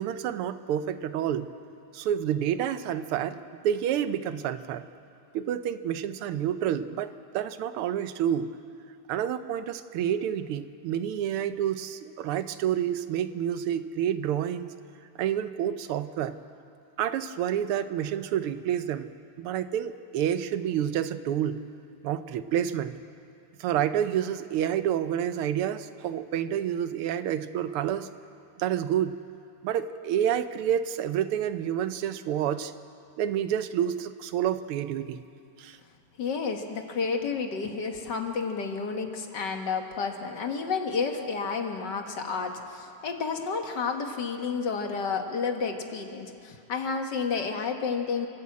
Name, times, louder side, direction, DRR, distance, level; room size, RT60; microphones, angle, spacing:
voice 1, 0.0-1.5 1.9-3.4 3.6-4.9 5.3-8.5 9.1-14.7 15.2-16.4 17.0-19.1 19.4-21.6 22.0-23.0 23.6-28.1 28.6-29.2 29.6-32.7 33.2-35.2 35.6-35.8, right 10 dB, 85° right, 12 dB, 1.7 m, -29 dB
voice 2, 36.2-48.3, left 5 dB, 55° left, 4 dB, 1.9 m, -31 dB
27.5 x 12.5 x 8.4 m, 2.4 s
omnidirectional pair, 2.4 m